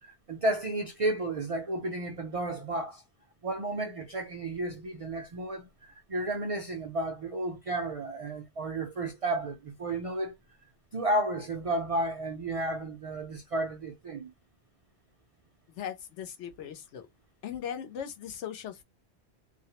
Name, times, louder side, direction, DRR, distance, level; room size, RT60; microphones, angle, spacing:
voice 1, 0.0-3.0 3.4-10.3 10.9-14.3, right 1 dB, 65° right, 0.3 m, -32 dB
voice 2, 15.7-17.1 17.4-18.8, left 9 dB, 85° left, 1.0 m, -39 dB
2.4 x 2.0 x 2.8 m
omnidirectional pair, 1.2 m